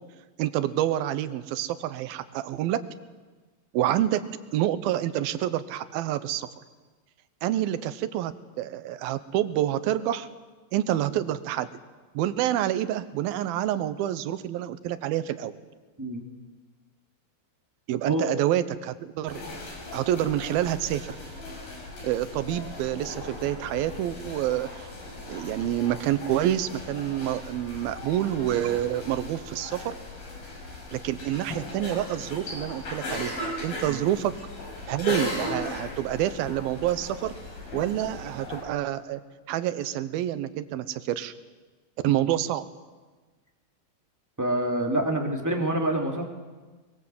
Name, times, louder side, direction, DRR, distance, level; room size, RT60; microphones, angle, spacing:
voice 1, 0.4-2.8 3.7-4.2 4.5-6.5 7.4-10.3 10.7-11.7 12.1-15.6 17.9-19.4 19.9-21.2 22.0-24.9 25.3-30.0 30.9-34.3 34.9-37.3 37.7-39.2 39.5-41.3 42.0-42.6, right 12 dB, 85° right, 13 dB, 2.8 m, -27 dB
sound 1, 19.3-38.6, left 2 dB, 70° left, 7.4 m, -37 dB
voice 2, 44.4-46.3, right 1 dB, 5° right, 1 dB, 2.3 m, -26 dB
23.0 x 22.5 x 7.9 m, 1.3 s
omnidirectional pair, 4.2 m